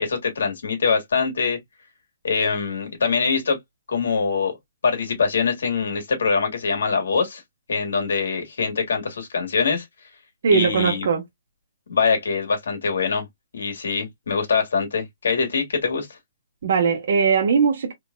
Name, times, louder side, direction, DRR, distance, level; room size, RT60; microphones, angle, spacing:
voice 1, 0.0-1.6 2.2-3.6 3.9-4.6 4.8-7.4 7.7-9.8 10.5-11.1 11.9-13.3 13.5-16.2, left 5 dB, 75° left, 2.0 m, -23 dB
voice 2, 10.4-11.2 16.6-17.9, right 5 dB, 65° right, 1.0 m, -19 dB
3.9 x 3.4 x 2.3 m
hypercardioid pair, 140°, 0 cm